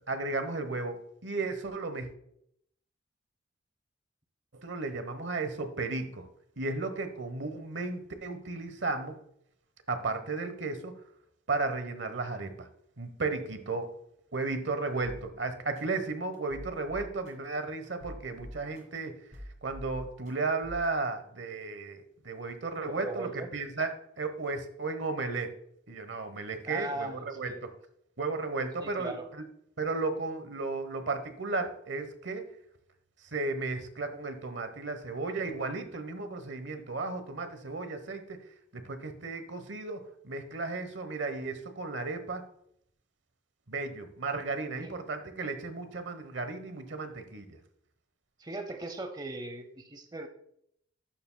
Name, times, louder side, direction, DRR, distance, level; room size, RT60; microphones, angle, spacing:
voice 1, 0.1-2.1 4.5-6.2 6.6-9.2 9.9-10.9 11.5-12.7 13.0-13.9 14.3-19.1 19.6-25.5 25.9-27.7 28.2-29.5 29.8-32.4 33.3-38.4 38.7-42.4 43.7-47.4, right 3 dB, 75° right, 9 dB, 1.0 m, -34 dB
sound 1, 15.0-15.2 15.7-15.8 16.3-17.3 17.8-19.0 19.3-20.3 20.6-20.9, equal, 45° right, 1.7 m, -44 dB
voice 2, 22.8-23.5 26.7-27.6 28.8-29.3 44.8-44.9 48.4-50.3, right 2 dB, 20° right, 7 dB, 0.6 m, -39 dB
11.5 x 7.1 x 2.2 m, 0.70 s
head